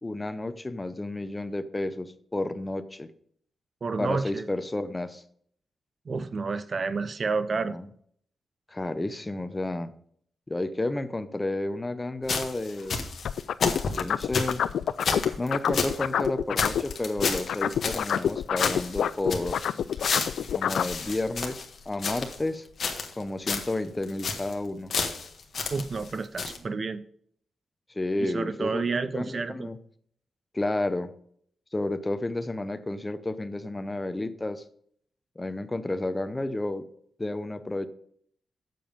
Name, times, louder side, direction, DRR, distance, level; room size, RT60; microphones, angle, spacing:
voice 1, 0.0-3.1 4.0-5.2 7.7-7.9 8.7-9.9 10.5-13.0 14.0-14.6 15.4-19.6 20.5-22.7 23.2-24.9 27.9-29.8 30.5-31.1 31.7-34.6 35.4-36.9 37.2-37.9, left 2 dB, 20° left, 12 dB, 0.7 m, -31 dB
voice 2, 3.8-4.5 6.1-7.8 25.7-27.1 28.2-29.7, right 4 dB, 45° right, 14 dB, 0.6 m, -30 dB
sound 1, 12.3-16.0 16.2-16.3 16.6-18.3 18.6-22.4 22.8-23.2 23.5-23.7 24.0-24.5 24.9-26.1 26.4-26.6, left 5 dB, 55° left, 1.5 m, -31 dB
sound 2, 13.2-16.9 17.2-20.9, left 9 dB, 85° left, 0.3 m, -27 dB
7.7 x 7.0 x 5.2 m, 0.63 s
wide cardioid pair, 110°, 0 cm